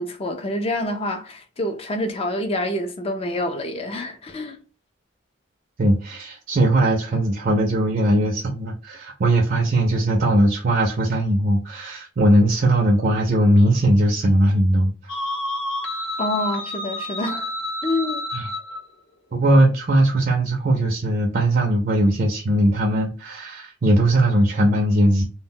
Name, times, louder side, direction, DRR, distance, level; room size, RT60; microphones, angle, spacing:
voice 1, 0.0-4.6 16.2-17.5 17.8-18.3, left 1 dB, 30° left, 0.3 m, -27 dB
voice 2, 5.8-14.9 18.3-18.5 19.3-25.2, right 1 dB, 45° right, 0.4 m, -19 dB
sound 1, 15.1-18.8, left 1 dB, 80° left, 0.7 m, -29 dB
2.1 x 2.1 x 3.5 m
head